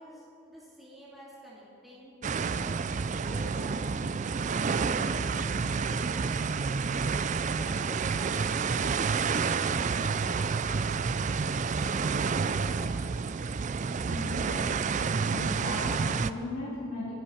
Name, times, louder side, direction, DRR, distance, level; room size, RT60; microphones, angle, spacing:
voice 1, 0.0-2.2 2.6-2.7 3.1-3.9 4.5-8.8 9.0-10.6 11.3-13.1, equal, ahead, -7 dB, 2.3 m, -49 dB
sound 1, 2.2-16.3, right 5 dB, 35° right, 0.4 m, -29 dB
voice 2, 14.0-14.7 15.3-17.2, left 1 dB, 65° left, -8 dB, 3.0 m, -37 dB
25.0 x 10.5 x 4.4 m, 2.7 s
head